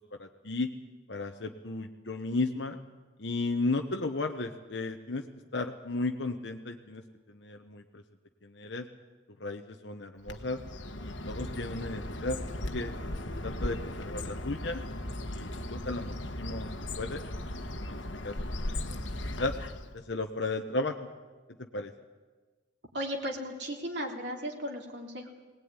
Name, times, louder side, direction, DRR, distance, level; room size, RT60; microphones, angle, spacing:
voice 1, 0.2-0.7 1.1-2.8 3.2-5.2 5.5-7.0 7.3-8.0 8.4-8.9 9.4-10.6 11.0-12.4 12.7-12.9 13.4-14.8 15.2-16.7 17.0-17.2 17.9-18.3 19.2-19.5 19.9-21.1 21.6-21.9, left 2 dB, 70° left, 4 dB, 1.1 m, -34 dB
Bird, 10.2-20.0, left 1 dB, 85° left, 1.6 m, -37 dB
voice 2, 22.9-25.3, equal, 65° right, 0 dB, 3.5 m, -36 dB
21.5 x 19.0 x 9.8 m, 1.3 s
head